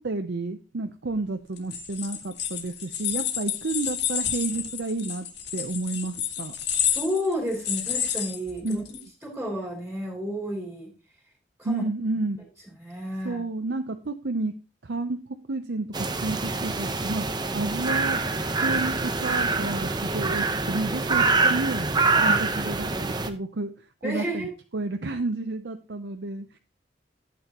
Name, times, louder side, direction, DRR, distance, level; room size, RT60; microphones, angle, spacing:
voice 1, 0.0-5.3 5.5-6.6 8.6-8.9 11.6-12.4 13.2-14.6 14.8-15.2 15.5-18.2 18.6-21.9 22.2-26.6, right 2 dB, 75° right, 6 dB, 0.7 m, -31 dB
sound 1, 1.6-9.0, left 9 dB, 70° left, 1.7 m, -30 dB
voice 2, 6.9-8.8 9.2-10.9 11.6-11.8 12.8-13.4 22.3-22.4 24.0-24.5, equal, 5° right, -2 dB, 3.0 m, -31 dB
sound 2, 15.9-23.3, right 3 dB, 25° right, 0.8 m, -25 dB
12.0 x 8.6 x 3.0 m, 0.33 s
head